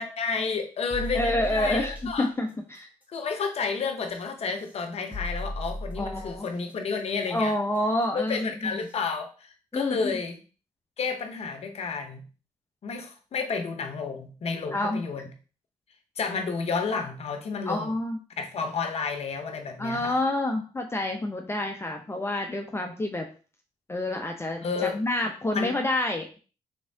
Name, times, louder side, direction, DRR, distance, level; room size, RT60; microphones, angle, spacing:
voice 1, 0.0-2.3 3.1-7.5 8.1-10.4 11.0-12.2 12.8-15.3 16.2-17.9 18.4-20.2 24.6-25.7, left 5 dB, 55° left, 6 dB, 0.8 m, -31 dB
sound 1, 0.9-2.2 4.1-4.2 5.1-6.5 8.3-8.4 8.9-9.0, left 1 dB, 15° right, 1.3 m, -35 dB
voice 2, 1.1-2.9 6.0-6.5 7.3-8.8 9.7-10.1 14.7-15.0 17.7-18.2 19.8-23.3 23.9-26.4, left 1 dB, 20° left, 3 dB, 0.6 m, -28 dB
3.5 x 3.0 x 2.7 m, 0.36 s
supercardioid pair, 50°, 13 cm